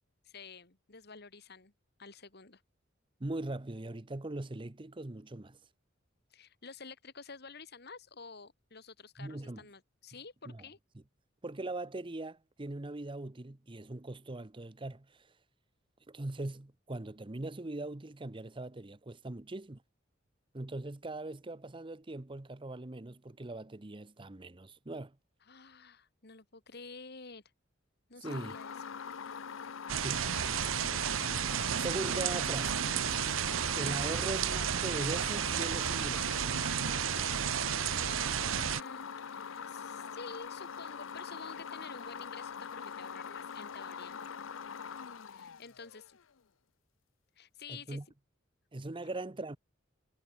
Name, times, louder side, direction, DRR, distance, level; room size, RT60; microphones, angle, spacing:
voice 1, 0.2-1.7 2.0-2.6 6.3-10.8 25.4-27.4 28.1-28.7 38.5-44.3 45.3-46.2 47.4-48.0, left 4 dB, 55° left, 2.4 m, -50 dB
voice 2, 3.2-5.6 9.2-9.6 10.5-10.6 11.4-15.3 16.1-19.8 20.5-25.2 28.2-28.6 30.0-30.3 31.8-32.8 33.7-36.5 47.7-48.0 48.7-49.6, right 2 dB, 25° right, 0.8 m, -40 dB
sound 1, 28.2-46.2, left 6 dB, 90° left, 0.7 m, -43 dB
sound 2, 29.9-38.8, right 9 dB, 90° right, 0.6 m, -32 dB
head